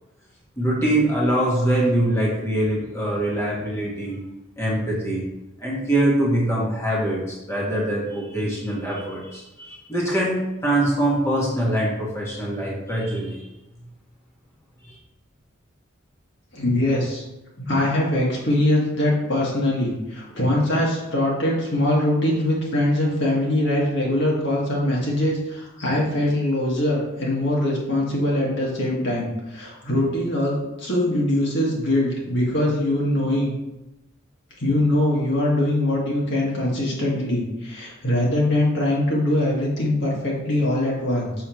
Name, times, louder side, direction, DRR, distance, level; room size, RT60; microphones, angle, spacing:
voice 1, 0.6-4.2 4.6-5.2 5.6-13.4 14.9-15.0, right 1 dB, 15° left, -6 dB, 1.4 m, -23 dB
voice 2, 16.5-17.2 17.6-33.5 34.6-41.3, left 1 dB, 65° left, -3 dB, 1.8 m, -22 dB
6.2 x 6.1 x 3.0 m, 0.96 s
head